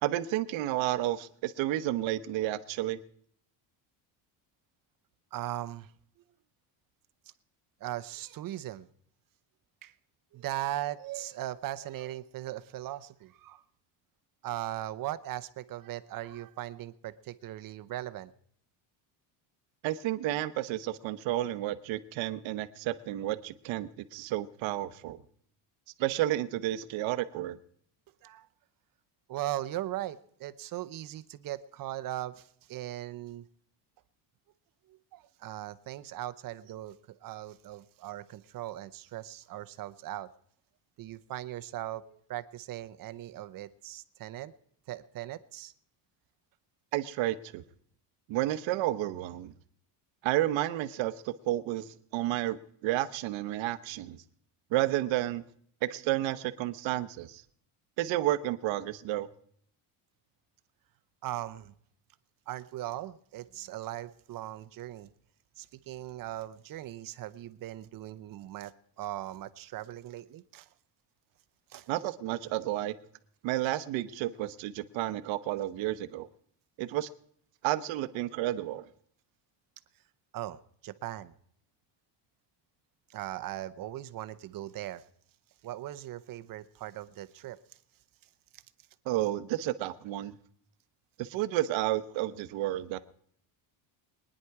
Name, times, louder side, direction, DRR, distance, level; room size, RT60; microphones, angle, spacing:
voice 1, 0.0-3.0 19.8-25.2 26.0-27.6 46.9-47.6 48.3-49.5 50.2-54.2 54.7-55.4 55.8-57.4 58.0-59.3 71.9-72.9 73.4-76.3 76.8-77.1 77.6-78.9 89.1-90.4 91.2-93.0, right 14 dB, 70° right, 12 dB, 1.0 m, -31 dB
voice 2, 5.3-5.9 7.8-8.9 9.8-9.9 10.3-13.6 14.4-18.3 28.2-28.5 29.3-33.4 34.9-40.3 41.0-44.5 44.9-45.7 61.2-61.7 62.5-65.1 65.6-70.7 71.7-71.9 80.3-81.3 83.1-85.0 85.6-87.6 88.5-88.6, right 14 dB, 45° right, 13 dB, 0.8 m, -39 dB
23.0 x 10.0 x 4.7 m, 0.65 s
cardioid pair, 155°, 47 cm